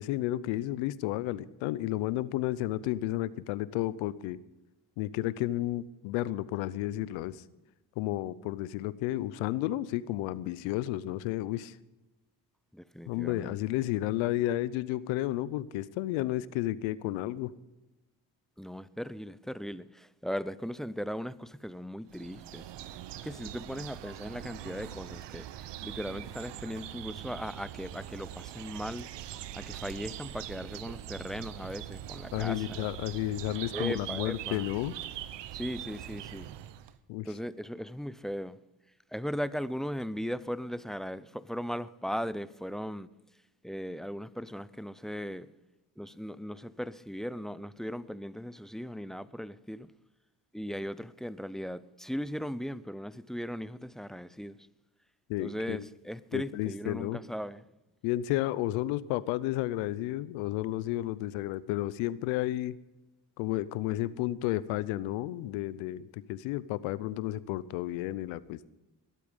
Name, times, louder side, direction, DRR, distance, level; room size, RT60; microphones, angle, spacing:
voice 1, 0.0-4.4 5.0-7.4 8.0-11.7 13.1-17.5 32.3-34.9 37.1-37.3 55.3-55.9 56.3-57.2 58.0-62.8 63.4-68.7, left 15 dB, 90° left, 0.7 m, -32 dB
voice 2, 12.7-13.6 18.6-22.7 23.2-25.5 25.8-29.1 29.5-32.6 33.7-34.6 35.5-36.5 37.2-38.6 39.1-43.1 43.6-45.5 46.0-49.9 50.5-54.5 55.4-57.6, equal, ahead, 0.5 m, -38 dB
sound 1, 22.1-37.0, right 12 dB, 65° right, 0.9 m, -42 dB
21.0 x 8.5 x 5.3 m
supercardioid pair, 70°, 45 cm